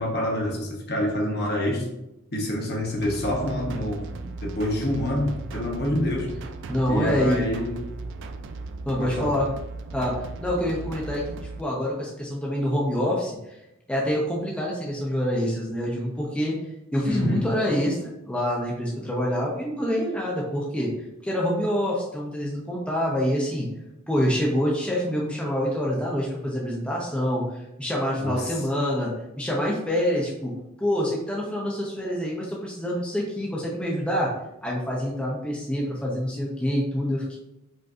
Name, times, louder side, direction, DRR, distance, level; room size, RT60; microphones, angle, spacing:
voice 1, 0.0-1.9 2.3-6.3 6.9-7.9 9.0-9.3 17.0-17.5 28.2-28.6, left 1 dB, 50° left, -1 dB, 0.9 m, -27 dB
sound 1, 3.0-11.6, right 3 dB, 60° right, 0.3 m, -37 dB
voice 2, 6.7-7.4 8.9-9.5 9.9-13.4 13.9-16.6 16.9-20.9 21.2-23.7 24.1-34.3 34.6-37.4, equal, 5° left, -4 dB, 0.6 m, -26 dB
5.0 x 2.6 x 2.4 m, 0.89 s
head